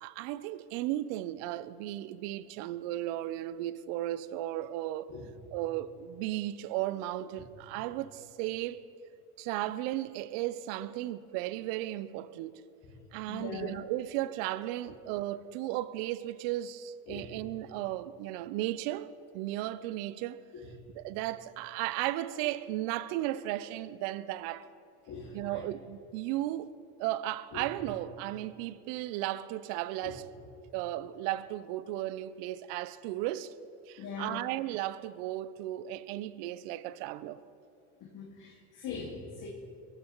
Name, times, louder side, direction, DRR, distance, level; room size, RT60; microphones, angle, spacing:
voice 1, 0.0-5.1 5.5-8.8 9.4-12.6 13.1-19.1 19.3-20.4 20.9-24.7 25.3-26.7 27.0-30.2 30.7-33.5 33.9-37.4, right 14 dB, 60° right, 0.7 m, -35 dB
voice 2, 13.3-13.8 17.1-17.3 20.5-20.9 25.1-25.6 27.5-27.7 30.0-30.1 34.0-34.4 38.0-39.5, left 5 dB, 45° left, 2.2 m, -42 dB
22.0 x 14.5 x 3.1 m
hypercardioid pair, 90°, 42 cm